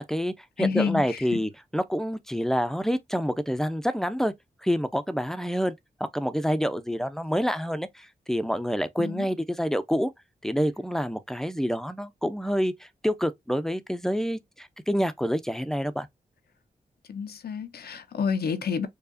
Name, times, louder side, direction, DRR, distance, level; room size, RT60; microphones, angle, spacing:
voice 1, 0.0-4.3 4.6-5.7 6.0-10.1 10.4-16.1, equal, 5° left, 0.7 m, -27 dB
voice 2, 0.6-1.2 9.0-9.2 17.1-18.9, left 6 dB, 80° left, 0.7 m, -29 dB
4.6 x 2.4 x 2.6 m
cardioid pair, 45°, 16 cm